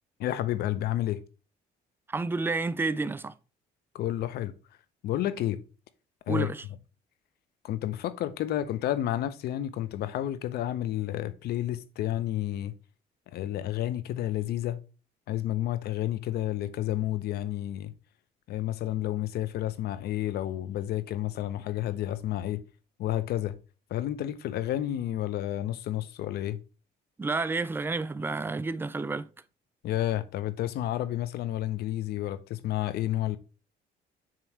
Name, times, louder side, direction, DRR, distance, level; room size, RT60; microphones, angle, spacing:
voice 1, 0.2-1.2 3.9-4.5 5.0-5.6 6.3-6.5 7.6-12.7 13.3-14.8 15.3-17.9 18.5-22.6 23.0-23.6 23.9-26.6 29.8-33.4, left 13 dB, 70° left, 0.7 m, -30 dB
voice 2, 2.1-3.3 6.3-6.7 27.2-29.3, right 3 dB, 15° right, 0.4 m, -30 dB
7.5 x 3.0 x 4.4 m
cardioid pair, 110°, 17 cm